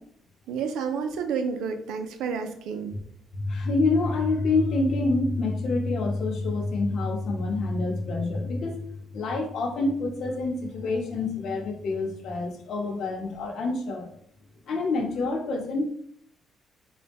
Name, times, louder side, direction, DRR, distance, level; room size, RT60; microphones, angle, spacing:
voice 1, 0.5-2.9, right 6 dB, 85° right, 7 dB, 0.5 m, -30 dB
voice 2, 3.3-8.8 9.1-14.1 14.7-15.8, left 3 dB, 65° left, 2 dB, 0.8 m, -27 dB
4.0 x 2.2 x 3.5 m, 0.65 s
cardioid pair, 90°, 0 cm